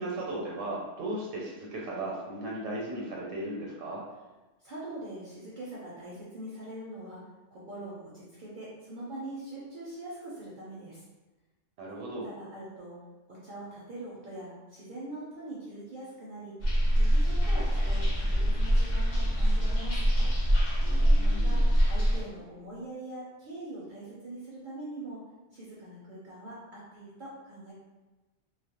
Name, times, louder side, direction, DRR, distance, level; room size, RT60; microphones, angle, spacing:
voice 1, 0.0-4.0 11.8-12.3 20.8-21.6, right 1 dB, 85° right, -3 dB, 1.0 m, -36 dB
voice 2, 4.6-7.2 7.5-11.0 12.2-12.9 13.3-16.5 16.9-20.3 21.2-25.2 25.5-27.7, right 1 dB, 55° right, -7 dB, 0.6 m, -43 dB
sound 1, 16.6-22.2, equal, 50° left, 0.5 m, -24 dB
2.3 x 2.1 x 2.8 m, 1.1 s
omnidirectional pair, 1.3 m